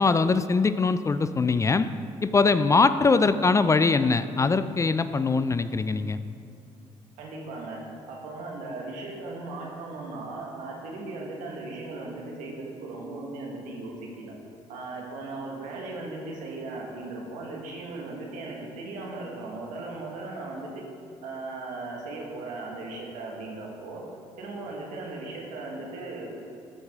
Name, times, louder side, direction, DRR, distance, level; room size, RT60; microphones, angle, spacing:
voice 1, 0.0-1.9 2.2-6.2, left 4 dB, 25° left, 13 dB, 0.3 m, -22 dB
voice 2, 7.2-7.8 8.1-14.3 14.7-20.8 21.2-24.0 24.4-26.3, right 2 dB, 85° right, -1 dB, 1.5 m, -37 dB
14.0 x 4.8 x 3.6 m, 2.6 s
supercardioid pair, 70°, 13 cm